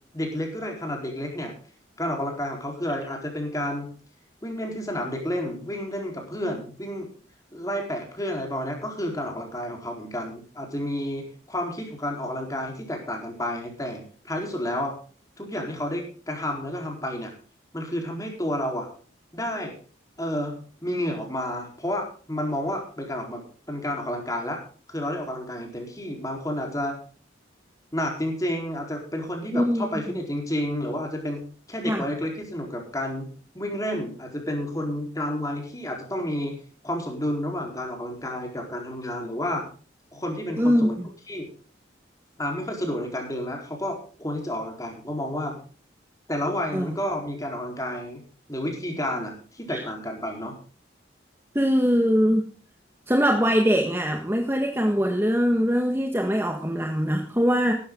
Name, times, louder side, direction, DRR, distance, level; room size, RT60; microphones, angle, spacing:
voice 1, 0.1-1.5 2.0-3.9 4.4-7.1 7.5-15.0 15.4-17.3 17.7-18.9 19.3-19.7 20.2-23.4 23.7-24.6 24.9-27.0 27.9-31.4 31.7-36.6 36.8-39.7 40.1-41.0 41.3-41.5 42.4-45.6 46.3-48.2 48.5-50.6, left 1 dB, 20° left, 1 dB, 4.3 m, -30 dB
voice 2, 29.5-29.8 31.9-32.0 40.6-41.1 46.7-46.9 49.7-49.8 51.6-52.5 53.1-57.7, equal, 10° right, 3 dB, 1.7 m, -22 dB
16.0 x 12.5 x 3.9 m, 0.41 s
head